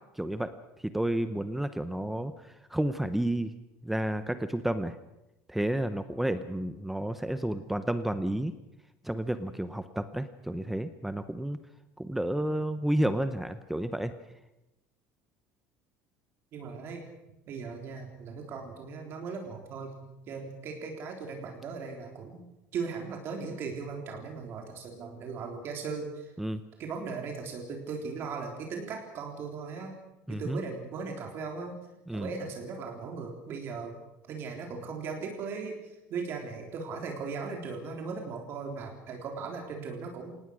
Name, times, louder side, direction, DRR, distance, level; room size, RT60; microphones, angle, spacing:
voice 1, 0.2-3.5 3.8-5.0 5.5-8.5 9.0-11.6 12.0-14.1 26.4-26.6 30.3-30.6 32.1-32.3, right 1 dB, 5° right, 11 dB, 0.8 m, -31 dB
voice 2, 16.5-17.0 17.5-20.0 20.3-22.4 22.7-26.3 26.8-30.0 30.3-31.8 32.1-34.0 34.3-40.3, right 5 dB, 45° right, 2 dB, 3.6 m, -38 dB
26.0 x 19.0 x 6.4 m, 0.94 s
cardioid pair, 155°, 6 cm